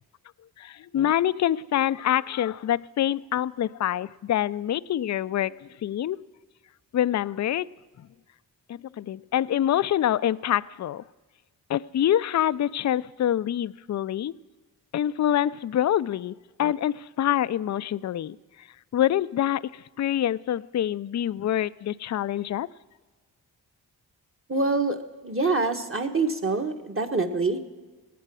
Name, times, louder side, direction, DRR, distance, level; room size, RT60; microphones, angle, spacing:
voice 1, 0.6-6.2 6.9-7.7 8.7-11.0 11.7-14.3 14.9-18.4 18.9-22.7, left 11 dB, 45° left, 18 dB, 0.4 m, -26 dB
voice 2, 24.5-25.0 25.2-27.6, right 3 dB, 30° right, 5 dB, 1.4 m, -25 dB
19.0 x 8.6 x 6.2 m, 1.3 s
cardioid pair, 65°, 42 cm